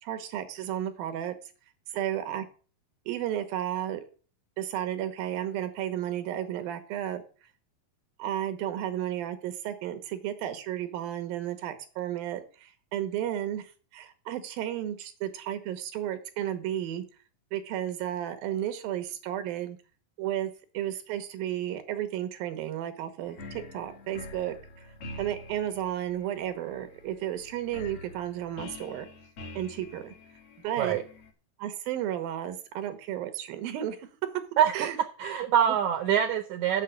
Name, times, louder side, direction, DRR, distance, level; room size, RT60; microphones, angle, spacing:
voice 1, 0.0-1.3 1.9-2.5 3.1-4.0 4.6-7.2 8.2-17.0 17.5-19.8 20.2-24.9 25.2-29.1 29.6-30.1 30.6-31.0 31.6-34.1 34.7-35.0 35.4-35.8, right 11 dB, 90° right, 9 dB, 3.0 m, -33 dB
sound 1, 23.2-31.3, left 2 dB, 50° left, 2.1 m, -46 dB
voice 2, 34.6-34.9 35.2-36.8, right 9 dB, 70° right, 9 dB, 1.9 m, -25 dB
7.4 x 6.5 x 8.0 m, 0.38 s
omnidirectional pair, 4.0 m